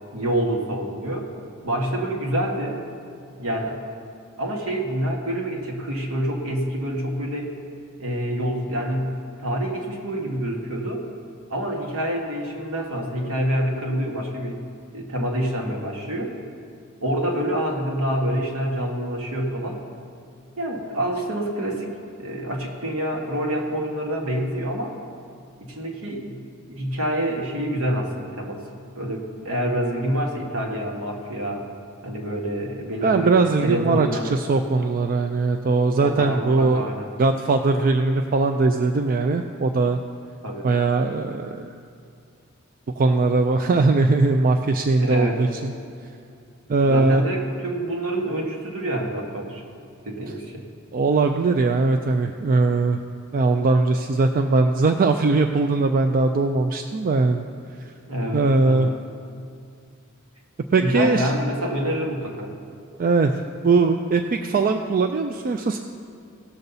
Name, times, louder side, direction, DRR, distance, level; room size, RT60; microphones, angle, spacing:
voice 1, 0.1-1.3 1.6-2.8 3.4-3.8 4.4-7.5 8.0-11.0 11.5-14.6 14.9-16.3 17.0-19.8 20.6-25.0 25.6-26.4 26.7-28.6 28.9-31.7 32.0-33.3 33.6-34.3 36.0-37.1 40.4-40.7 45.0-45.4 46.8-49.6 50.0-50.6 58.1-58.9 60.8-62.5, right 1 dB, 80° right, 0 dB, 1.6 m, -27 dB
voice 2, 33.0-36.9 37.2-40.0 40.6-41.7 43.0-45.7 46.7-47.2 50.9-53.0 53.3-57.4 58.3-58.9 60.7-61.3 63.0-63.3 63.6-65.8, right 3 dB, 40° right, 6 dB, 0.4 m, -20 dB
17.0 x 6.8 x 4.0 m, 2.4 s
head